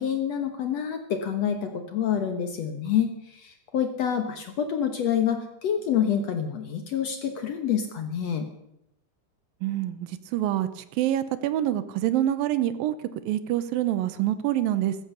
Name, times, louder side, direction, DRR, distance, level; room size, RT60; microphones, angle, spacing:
voice 1, 0.0-8.5, left 8 dB, 70° left, 7 dB, 1.5 m, -27 dB
voice 2, 9.6-13.0 13.3-15.0, right 12 dB, 75° right, 13 dB, 2.2 m, -26 dB
14.5 x 14.0 x 6.9 m, 0.82 s
omnidirectional pair, 4.7 m